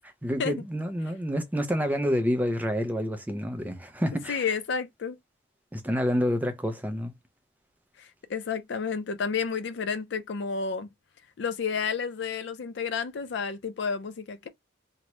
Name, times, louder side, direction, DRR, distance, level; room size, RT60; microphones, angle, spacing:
voice 1, 0.2-4.4 5.7-7.1, equal, 10° right, 0.4 m, -28 dB
voice 2, 4.3-5.2 8.0-10.9 11.4-14.5, left 5 dB, 55° left, 0.4 m, -31 dB
2.8 x 2.1 x 3.0 m
head